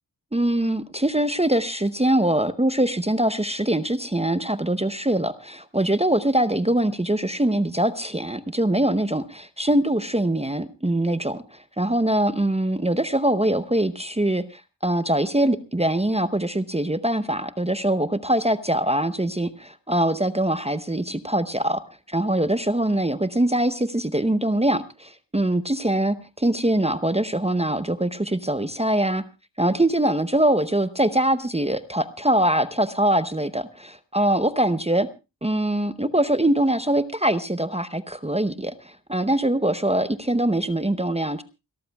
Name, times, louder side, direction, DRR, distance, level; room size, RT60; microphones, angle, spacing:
voice 1, 0.3-21.8 22.1-29.2 29.6-35.1 35.4-41.4, right 1 dB, 15° right, 12 dB, 0.7 m, -23 dB
29.0 x 13.5 x 2.3 m, 0.27 s
wide cardioid pair, 70°, 43 cm